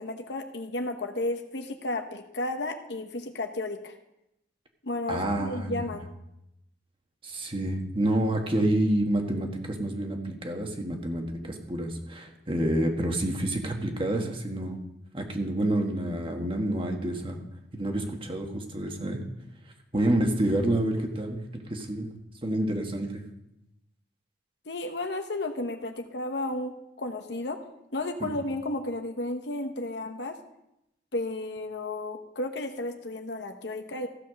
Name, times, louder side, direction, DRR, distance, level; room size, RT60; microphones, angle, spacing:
voice 1, 0.0-4.0 4.8-6.0 24.7-27.6 27.9-30.4 31.1-34.1, left 2 dB, 75° left, 6 dB, 1.0 m, -33 dB
voice 2, 5.1-5.9 7.2-14.9 15.1-17.4 17.7-19.2 19.9-22.1 22.4-23.2 28.2-28.3, right 1 dB, 30° right, 3 dB, 1.6 m, -28 dB
15.0 x 5.7 x 6.5 m, 0.85 s
head